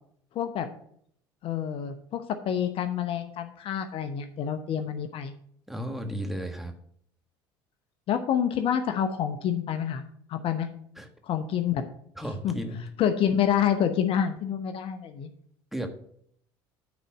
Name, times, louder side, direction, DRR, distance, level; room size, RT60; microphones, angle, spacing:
voice 1, 0.3-0.7 1.4-5.3 8.1-10.0 10.3-10.7 11.2-11.8 12.4-12.5 13.0-15.3, left 9 dB, 50° left, 8 dB, 0.9 m, -27 dB
voice 2, 5.7-6.7 11.0-11.1 12.1-12.8 15.7-15.9, equal, ahead, 5 dB, 1.5 m, -34 dB
9.6 x 4.1 x 6.2 m, 0.65 s
hypercardioid pair, 75°, 12 cm